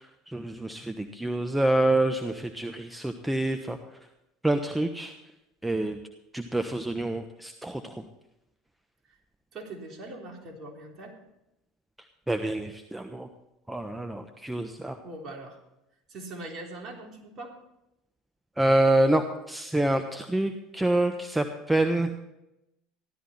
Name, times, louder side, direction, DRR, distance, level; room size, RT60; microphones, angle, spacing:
voice 1, 0.0-3.8 4.4-5.1 5.6-6.0 6.3-8.0 12.3-13.3 13.7-15.0 18.6-22.1, right 1 dB, 10° right, 7 dB, 1.2 m, -27 dB
voice 2, 9.5-11.1 15.0-15.6 16.1-17.6, right 2 dB, 40° right, 1 dB, 3.7 m, -41 dB
15.5 x 12.5 x 4.3 m, 0.89 s
hypercardioid pair, 70°, 0 cm